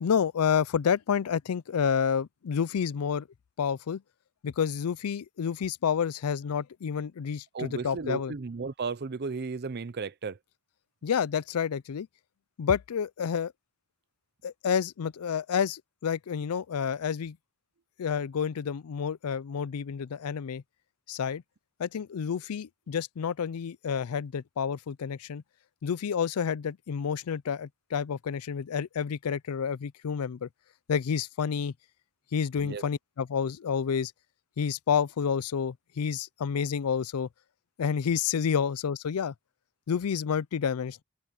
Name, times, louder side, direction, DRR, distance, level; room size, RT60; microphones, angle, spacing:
voice 1, 0.0-3.3 3.6-4.0 4.4-8.3 11.0-12.1 12.6-13.5 14.4-17.4 18.0-20.6 21.1-21.4 21.8-25.4 25.8-30.5 30.9-31.7 32.3-34.1 34.6-37.3 37.8-39.3 39.9-41.0, left 7 dB, 85° left, 0.4 m, -29 dB
voice 2, 7.5-10.4 32.6-32.8, right 4 dB, 50° right, 0.6 m, -34 dB
head